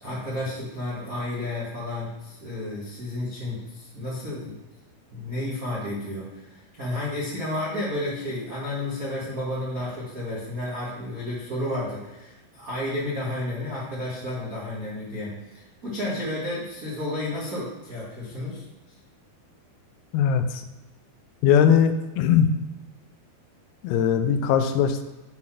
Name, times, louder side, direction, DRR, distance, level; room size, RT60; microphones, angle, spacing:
voice 1, 0.0-4.6 5.1-18.6, left 1 dB, 70° right, -8 dB, 0.8 m, -32 dB
voice 2, 20.1-20.6 21.4-22.5 23.8-25.0, left 8 dB, 85° left, 8 dB, 2.6 m, -20 dB
7.5 x 3.9 x 5.8 m, 1.1 s
omnidirectional pair, 4.7 m